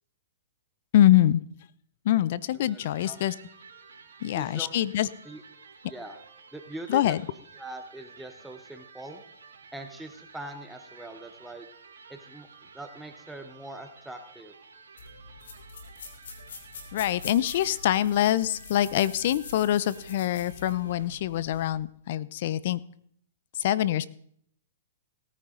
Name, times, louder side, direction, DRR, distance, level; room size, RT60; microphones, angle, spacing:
voice 1, 0.9-1.4 2.1-3.3 4.2-5.1 6.9-7.2 16.9-22.8 23.6-24.0, left 12 dB, 55° left, 19 dB, 0.6 m, -24 dB
voice 2, 2.5-3.2 4.3-4.9 5.2-5.4 5.9-6.2 6.5-7.2 7.5-9.2 9.7-11.7 12.1-12.5 12.7-14.5, right 1 dB, 5° right, 6 dB, 0.9 m, -42 dB
Electric guitar, 2.7-21.1, right 5 dB, 90° right, 2.6 m, -52 dB
sound 1, 15.0-21.7, left 4 dB, 75° left, 3.0 m, -45 dB
17.5 x 9.7 x 3.8 m, 0.66 s
hypercardioid pair, 130°, 0 cm